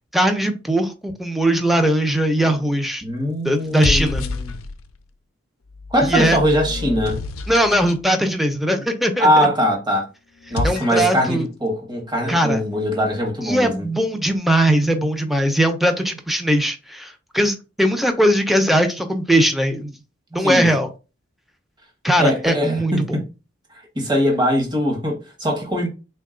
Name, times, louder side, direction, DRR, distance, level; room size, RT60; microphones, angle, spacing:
voice 1, 0.1-3.0 3.4-4.2 6.1-6.4 7.5-9.5 10.6-11.5 12.3-12.6 13.4-19.9 20.3-20.9 22.0-22.9, right 1 dB, ahead, 0.4 m, -19 dB
sound 1, 2.4-2.8 3.6-5.0 5.7-8.0 10.4-11.3, left 3 dB, 85° left, 0.4 m, -28 dB
voice 2, 3.0-4.6 5.9-7.2 9.2-10.1 10.5-13.8 20.4-20.7 22.2-23.2 23.7-25.9, equal, 20° right, 0.9 m, -21 dB
3.5 x 2.2 x 3.6 m
head